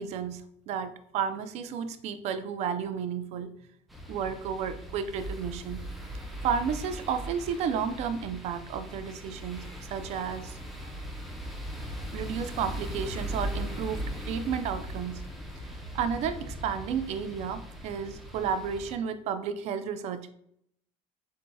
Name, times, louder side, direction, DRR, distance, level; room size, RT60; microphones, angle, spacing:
voice 1, 0.0-3.5 4.1-5.8 6.4-10.9 12.1-15.2 15.9-20.3, right 7 dB, 55° right, 10 dB, 0.5 m, -32 dB
sound 1, 3.9-19.0, equal, ahead, 0.7 m, -39 dB
7.6 x 2.8 x 2.3 m, 0.70 s
cardioid pair, 140°, 13 cm